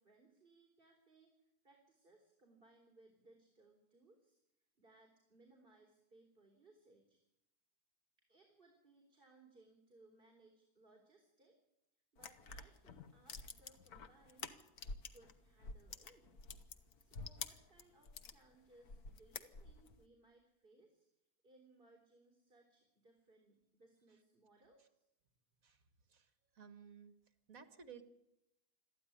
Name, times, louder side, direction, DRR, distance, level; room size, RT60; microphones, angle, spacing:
voice 1, 0.0-4.4 4.8-7.2 8.3-11.5 12.1-14.5 15.1-16.3 17.0-21.0 21.4-25.0, right 2 dB, 35° right, 2 dB, 3.5 m, -67 dB
sound 1, 12.2-15.3 15.6-18.4 18.8-19.9, left 4 dB, 75° left, 1.7 m, -49 dB
voice 2, 26.6-27.1 27.5-28.0, right 6 dB, 60° right, 10 dB, 2.0 m, -55 dB
22.0 x 14.0 x 9.9 m, 0.87 s
omnidirectional pair, 1.7 m